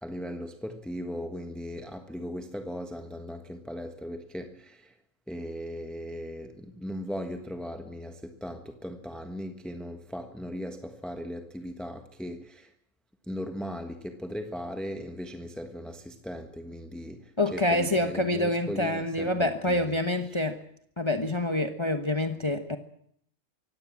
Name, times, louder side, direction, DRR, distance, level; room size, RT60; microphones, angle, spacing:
voice 1, 0.0-4.9 5.3-12.7 13.3-20.0 20.3-20.4, equal, ahead, 1.3 m, -38 dB
voice 2, 17.4-20.6 21.0-22.8, left 1 dB, 20° left, 1.2 m, -27 dB
24.5 x 17.0 x 7.4 m
omnidirectional pair, 1.4 m